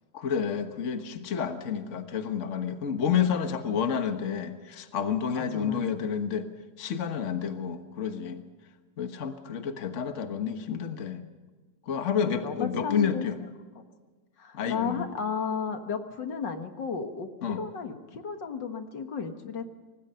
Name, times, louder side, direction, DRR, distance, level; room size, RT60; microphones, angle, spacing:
voice 1, 0.1-6.5 6.8-8.4 9.0-11.2 11.9-13.4 14.5-15.1 17.4-17.6, left 7 dB, 45° left, 7 dB, 1.6 m, -30 dB
voice 2, 5.3-5.8 12.3-13.3 14.4-19.6, left 6 dB, 75° left, 6 dB, 2.2 m, -33 dB
25.5 x 19.0 x 5.6 m, 1.4 s
omnidirectional pair, 2.0 m